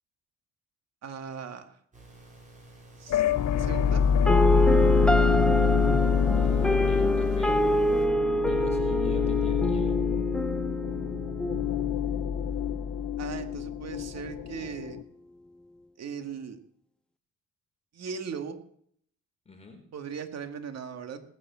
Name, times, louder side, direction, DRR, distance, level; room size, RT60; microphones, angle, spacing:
voice 1, 1.0-1.8 3.0-3.2 3.6-4.0 13.2-15.0 16.0-16.6 17.9-18.6 19.9-21.2, right 6 dB, 60° right, 7 dB, 2.1 m, -38 dB
sound 1, 1.9-8.1, right 2 dB, 25° right, 6.7 m, -51 dB
sound 2, 3.1-15.0, left 7 dB, 70° left, 1.2 m, -26 dB
sound 3, 4.3-12.3, equal, 5° left, 0.9 m, -26 dB
voice 2, 5.3-5.7 6.4-7.6 8.5-10.0 19.5-19.8, left 3 dB, 20° left, 3 dB, 4.1 m, -45 dB
18.5 x 9.5 x 7.5 m, 0.64 s
cardioid pair, 90°, 30 cm